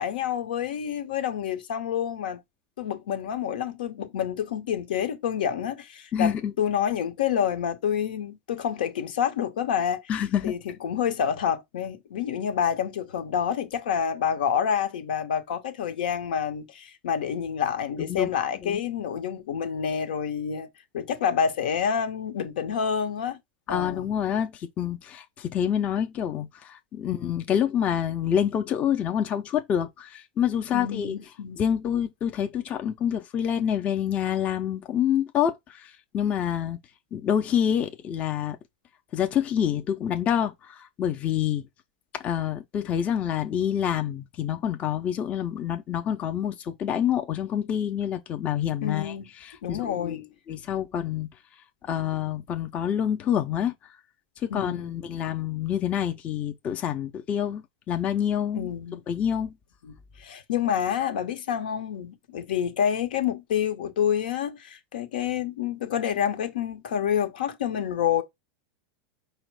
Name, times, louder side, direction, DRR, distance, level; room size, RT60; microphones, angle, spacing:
voice 1, 0.0-2.4 2.8-10.0 10.4-20.7 20.9-23.4 23.7-24.1 30.7-31.6 48.8-49.3 49.6-50.2 54.5-55.0 58.5-59.0 59.8-68.2, left 8 dB, 85° left, 0.9 m, -28 dB
voice 2, 6.1-6.5 10.1-10.5 18.0-18.3 18.6-18.8 23.7-31.2 31.6-36.8 37.1-38.6 39.1-41.6 42.2-49.1 49.4-51.3 51.9-53.7 54.4-58.7 59.1-59.5, left 9 dB, 30° left, 0.5 m, -27 dB
4.9 x 2.1 x 4.6 m
supercardioid pair, 140°, 5 cm